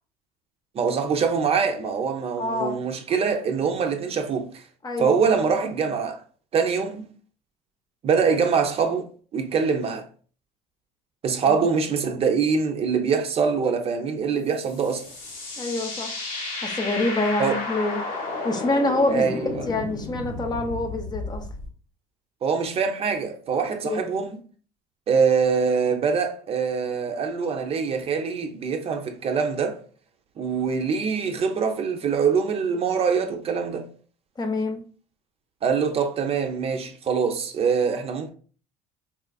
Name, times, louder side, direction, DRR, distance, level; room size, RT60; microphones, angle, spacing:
voice 1, 0.7-4.6 5.0-6.2 6.5-7.1 8.0-10.1 11.2-15.1 17.4-17.6 19.1-19.6 22.4-24.4 25.1-29.8 30.4-33.9 35.6-38.3, right 6 dB, 40° right, 0.5 m, -24 dB
voice 2, 2.4-2.8 4.8-5.2 11.4-11.6 15.6-16.1 16.6-18.0 18.4-19.4 19.7-21.5 23.8-24.0 34.4-34.8, left 2 dB, 25° left, 0.7 m, -26 dB
sound 1, 14.5-21.7, left 3 dB, 60° left, 1.2 m, -33 dB
4.1 x 2.3 x 2.2 m
supercardioid pair, 80°, 16 cm